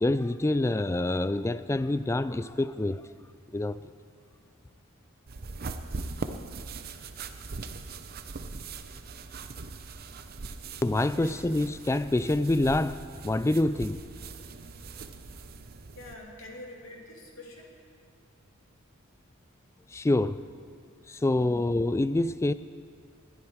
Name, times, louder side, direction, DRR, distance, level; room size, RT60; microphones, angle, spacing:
voice 1, 0.0-3.0 3.5-3.8 10.8-14.0 19.9-20.4 21.1-22.5, left 2 dB, 15° left, 0.3 m, -26 dB
sound 1, 5.3-16.1, right 3 dB, 45° right, 0.7 m, -41 dB
voice 2, 15.9-17.7, left 1 dB, 70° left, 2.8 m, -46 dB
20.5 x 12.0 x 4.7 m
head